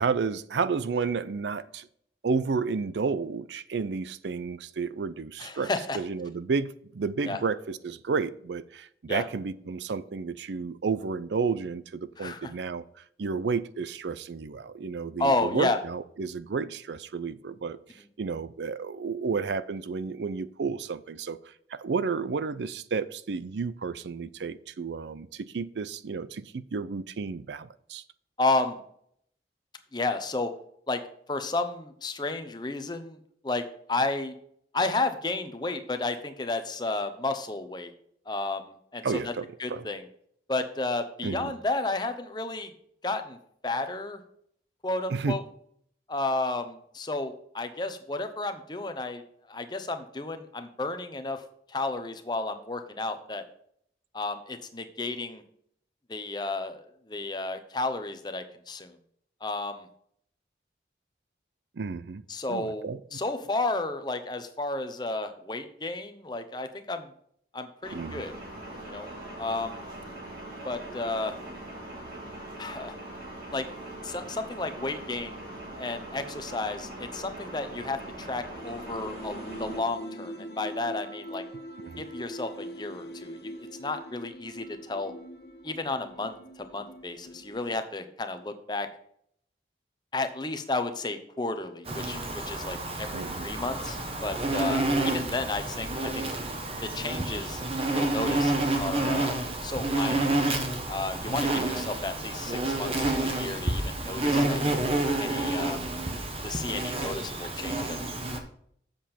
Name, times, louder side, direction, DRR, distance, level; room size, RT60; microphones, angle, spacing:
voice 1, 0.0-1.9 2.2-28.0 39.0-39.9 41.2-41.5 45.1-45.4 61.8-62.2 62.5-63.0 67.9-68.2 81.8-82.1 93.1-93.5 101.6-101.7, right 5 dB, 85° right, 0.5 m, -32 dB
voice 2, 5.4-6.0 7.3-7.4 9.1-9.2 12.2-12.5 15.2-15.8 28.4-28.8 29.9-30.5 30.9-31.0 31.3-33.2 33.4-33.6 33.9-34.3 34.7-37.9 38.3-39.3 39.6-40.0 40.5-42.7 43.0-43.4 43.6-44.2 44.8-45.4 46.1-49.2 49.5-51.4 51.7-53.4 54.1-55.4 56.1-58.9 59.4-59.9 62.3-62.9 63.1-67.1 67.5-68.3 68.8-69.1 69.4-69.8 70.6-71.4 72.6-73.0 73.5-73.7 74.0-75.4 75.8-81.4 82.0-83.5 83.8-85.1 85.6-88.9 90.1-96.2 96.8-97.6 97.9-99.3 99.6-100.4 100.9-104.6 105.2-105.8 106.4-108.1, left 2 dB, 25° left, 0.8 m, -32 dB
sound 1, 67.8-79.8, right 1 dB, 55° right, 3.1 m, -41 dB
sound 2, 78.5-87.7, equal, 70° left, 1.4 m, -42 dB
Insect, 91.9-108.4, right 2 dB, 35° right, 1.1 m, -29 dB
7.8 x 7.2 x 4.3 m
head